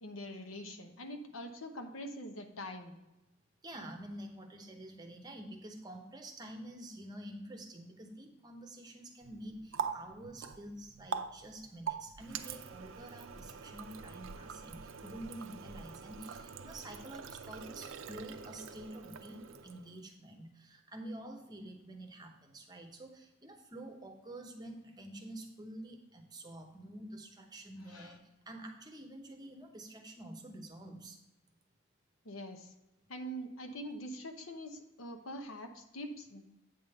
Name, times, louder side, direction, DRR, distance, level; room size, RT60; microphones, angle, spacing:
voice 1, 0.0-2.9 27.8-28.2 32.2-32.7 33.1-36.4, equal, 80° left, 5 dB, 0.9 m, -44 dB
voice 2, 3.6-31.2, right 1 dB, 20° right, 3 dB, 0.8 m, -48 dB
Water tap faucet, 9.2-20.0, right 6 dB, 65° right, 0.5 m, -44 dB
8.6 x 3.7 x 6.5 m, 0.95 s
head